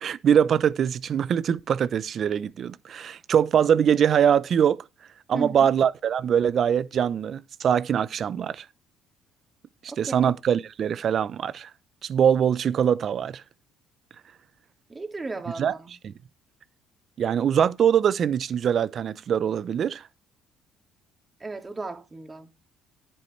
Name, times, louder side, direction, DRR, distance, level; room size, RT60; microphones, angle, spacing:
voice 1, 0.0-4.8 5.3-8.6 9.8-11.7 12.0-13.4 15.6-15.7 16.0-16.1 17.2-20.0, right 8 dB, 50° right, 0.8 m, -23 dB
voice 2, 5.3-5.7 10.1-10.3 14.9-15.9 21.4-22.5, right 3 dB, 25° right, 2.4 m, -35 dB
10.5 x 8.9 x 3.3 m
hypercardioid pair, 65°, 0 cm